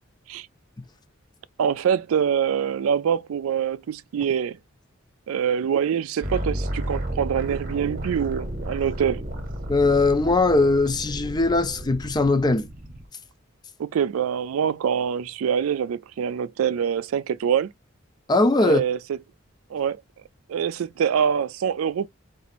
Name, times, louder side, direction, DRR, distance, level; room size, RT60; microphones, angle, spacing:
voice 1, 1.6-4.6 5.3-9.2 13.8-17.7 18.6-19.2 19.7-20.0 20.5-22.1, right 8 dB, 85° right, 0.3 m, -25 dB
sound 1, 6.2-13.0, right 1 dB, 40° right, 1.0 m, -32 dB
voice 2, 9.7-12.7 18.3-18.8, left 2 dB, 20° left, 0.5 m, -20 dB
4.1 x 2.6 x 4.2 m
head